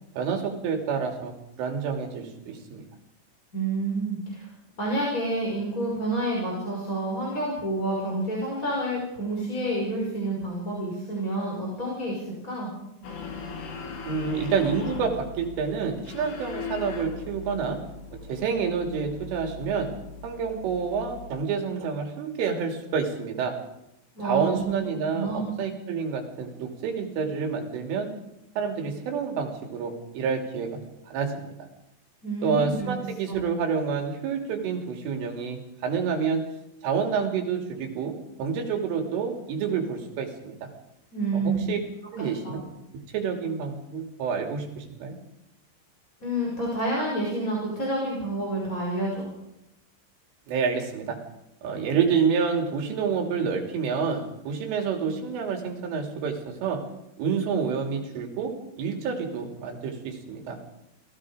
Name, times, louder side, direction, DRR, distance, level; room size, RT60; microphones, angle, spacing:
voice 1, 0.2-2.8 14.0-17.8 18.2-19.9 20.2-23.6 24.2-28.1 28.6-30.8 31.1-31.7 32.4-36.5 36.8-38.1 38.4-40.7 41.3-41.8 42.1-42.6 43.1-45.2 50.5-51.2 51.6-56.8 57.2-60.6, right 6 dB, 90° right, 3 dB, 5.5 m, -28 dB
voice 2, 3.5-4.5 4.8-12.7 24.1-24.7 25.1-25.5 32.2-32.9 33.3-33.4 41.1-41.7 42.2-42.6 46.2-49.3, right 2 dB, 15° left, -3 dB, 5.5 m, -29 dB
sound 1, 13.0-21.3, left 5 dB, 80° left, 5.4 m, -39 dB
29.5 x 18.5 x 5.1 m, 0.89 s
omnidirectional pair, 5.5 m